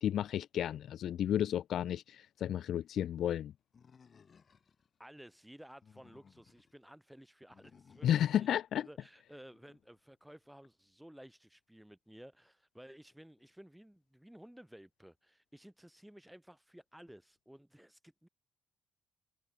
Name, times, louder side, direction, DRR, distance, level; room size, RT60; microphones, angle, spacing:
voice 1, 0.0-3.5 8.0-8.8, left 10 dB, 70° left, 0.3 m, -32 dB
Animal, 3.7-4.9 5.6-6.7 7.5-8.5, left 6 dB, 45° left, 3.6 m, -62 dB
voice 2, 5.0-18.3, equal, 5° right, 6.0 m, -55 dB
cardioid pair, 90°, 0 cm